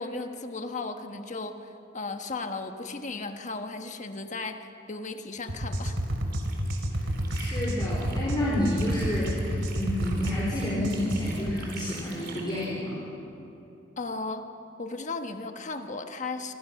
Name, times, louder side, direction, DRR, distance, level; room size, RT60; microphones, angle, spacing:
voice 1, 0.0-6.0 14.0-14.4 14.8-16.5, left 3 dB, 40° left, 6 dB, 1.4 m, -35 dB
sound 1, 5.5-11.6, equal, 85° right, 2.9 m, -30 dB
sound 2, 6.1-8.3 8.5-12.7, right 5 dB, 60° right, 4.1 m, -46 dB
voice 2, 6.9-13.0, left 1 dB, 25° left, -6 dB, 4.3 m, -30 dB
26.5 x 25.0 x 6.0 m, 2.9 s
head